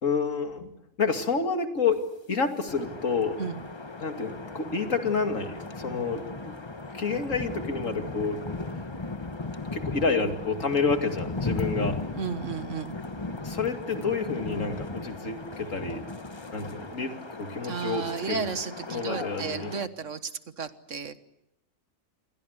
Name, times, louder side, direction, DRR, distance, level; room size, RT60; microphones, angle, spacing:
voice 1, 0.0-0.7 1.0-2.0 2.3-3.4 4.0-6.5 6.9-8.4 9.7-11.9 13.4-16.1 16.5-18.4 18.9-19.7, left 4 dB, 75° left, 6 dB, 2.8 m, -29 dB
sound 1, 2.7-19.9, left 3 dB, 20° left, 1.2 m, -37 dB
voice 2, 12.1-13.0 17.6-20.3 20.6-21.2, right 5 dB, 70° right, 11 dB, 1.7 m, -33 dB
28.5 x 22.5 x 8.1 m, 0.80 s
omnidirectional pair, 1.3 m